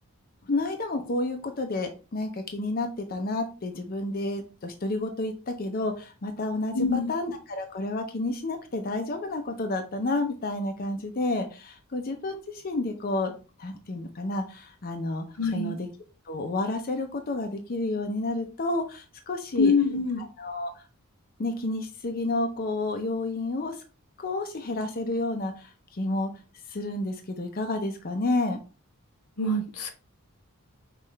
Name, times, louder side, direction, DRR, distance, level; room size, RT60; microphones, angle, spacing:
voice 1, 0.5-13.3 13.6-15.2 15.5-15.9 16.3-19.7 20.2-20.8 21.4-23.8 24.2-26.3 26.7-28.6, left 2 dB, 40° left, 5 dB, 0.5 m, -30 dB
voice 2, 6.7-7.1 15.4-15.8 19.6-20.2 29.4-29.9, left 3 dB, 85° left, 5 dB, 0.8 m, -24 dB
5.6 x 2.4 x 3.2 m, 0.33 s
head